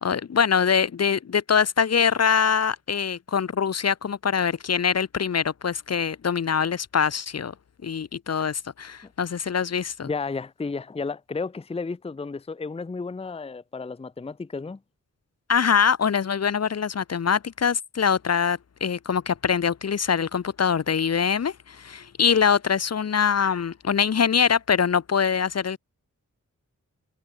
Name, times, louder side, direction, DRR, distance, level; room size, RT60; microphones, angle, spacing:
voice 1, 0.0-7.5 7.8-10.1 15.5-25.8, left 7 dB, 55° left, 0.8 m, -23 dB
voice 2, 10.0-14.8, left 4 dB, 20° left, 0.6 m, -32 dB
wide cardioid pair, 105°, 32 cm